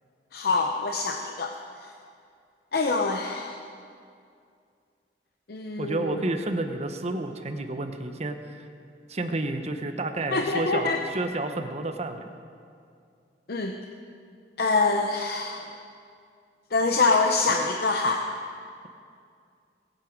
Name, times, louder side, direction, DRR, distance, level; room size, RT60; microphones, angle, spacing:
voice 1, 0.3-1.5 1.8-1.9 2.7-3.6 5.5-6.2 10.3-11.0 13.5-13.7 14.6-15.7 16.7-18.2, left 3 dB, 60° left, 2 dB, 0.7 m, -25 dB
voice 2, 5.8-8.7 9.1-12.2, right 2 dB, 35° right, 6 dB, 0.9 m, -30 dB
20.0 x 8.9 x 5.2 m, 2.3 s
head